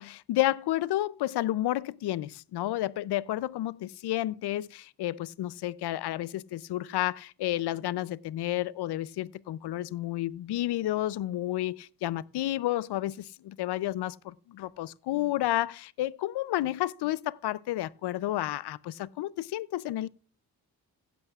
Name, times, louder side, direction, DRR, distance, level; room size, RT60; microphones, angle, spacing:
voice 1, 0.0-20.1, left 14 dB, 75° left, 0.5 m, -31 dB
16.0 x 11.5 x 2.4 m
cardioid pair, 115°, 40 cm